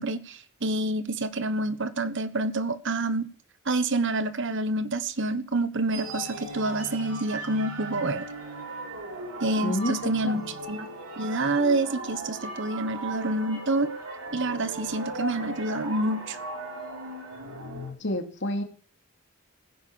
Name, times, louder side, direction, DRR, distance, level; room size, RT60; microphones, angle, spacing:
voice 1, 0.0-3.3 3.6-8.2 9.4-10.4 10.7-10.9 11.2-13.9 14.3-16.4, right 2 dB, 55° right, 13 dB, 1.3 m, -27 dB
sound 1, 5.9-17.9, right 2 dB, 80° right, 5.8 m, -37 dB
voice 2, 9.6-10.4 18.0-18.6, left 1 dB, 55° left, 5 dB, 2.8 m, -29 dB
15.5 x 10.5 x 7.2 m, 0.41 s
head